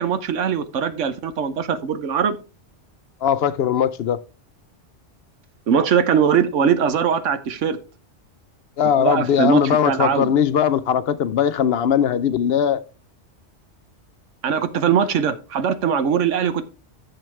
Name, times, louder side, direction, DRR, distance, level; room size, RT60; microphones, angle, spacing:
voice 1, 0.0-2.4 5.7-7.8 9.0-10.3 14.4-16.6, right 7 dB, 85° right, 1.2 m, -21 dB
voice 2, 3.2-4.2 8.8-12.8, left 8 dB, 65° left, 0.7 m, -19 dB
10.5 x 7.0 x 3.2 m
omnidirectional pair, 1.2 m